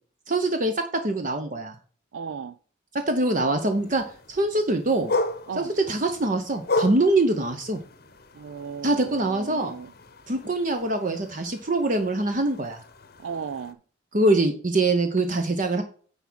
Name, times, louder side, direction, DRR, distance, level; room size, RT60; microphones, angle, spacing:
voice 1, 0.3-1.7 2.9-5.1 5.6-7.8 8.8-9.7 10.3-12.8 14.1-15.8, right 2 dB, 40° right, 6 dB, 0.8 m, -24 dB
voice 2, 2.1-2.6 5.5-5.7 8.3-9.9 13.2-13.8, right 6 dB, 80° right, 11 dB, 0.4 m, -35 dB
sound 1, 3.5-13.7, left 2 dB, 50° left, 0.9 m, -35 dB
9.8 x 3.5 x 6.1 m, 0.43 s
head